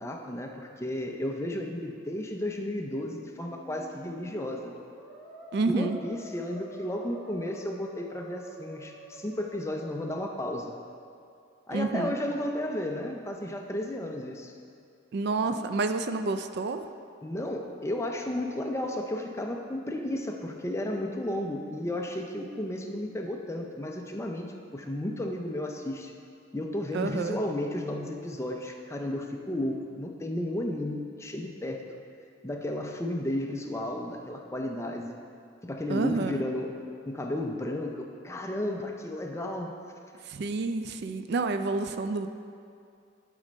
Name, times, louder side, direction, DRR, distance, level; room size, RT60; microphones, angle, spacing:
voice 1, 0.0-4.7 5.7-10.7 11.7-14.5 17.2-24.5 24.7-26.1 26.5-31.9 32.4-35.2 35.6-36.8 37.1-39.8, left 1 dB, 15° left, 2 dB, 0.5 m, -33 dB
Musical instrument, 3.2-11.2, right 1 dB, 5° right, 1.1 m, -48 dB
voice 2, 5.5-6.0 11.7-12.1 15.1-16.8 26.9-27.4 35.9-36.4 40.2-42.3, right 3 dB, 55° right, 9 dB, 0.3 m, -29 dB
11.0 x 4.2 x 5.1 m, 2.4 s
head